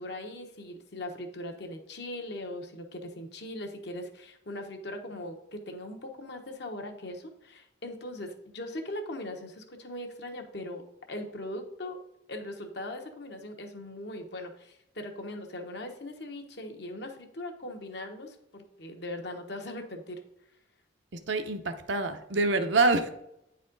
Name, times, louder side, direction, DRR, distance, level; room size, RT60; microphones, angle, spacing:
voice 1, 0.0-12.0 12.3-20.2, left 1 dB, 55° left, 3 dB, 1.0 m, -40 dB
voice 2, 21.1-23.1, right 3 dB, 70° right, 8 dB, 0.7 m, -26 dB
9.2 x 4.2 x 3.9 m, 0.82 s
head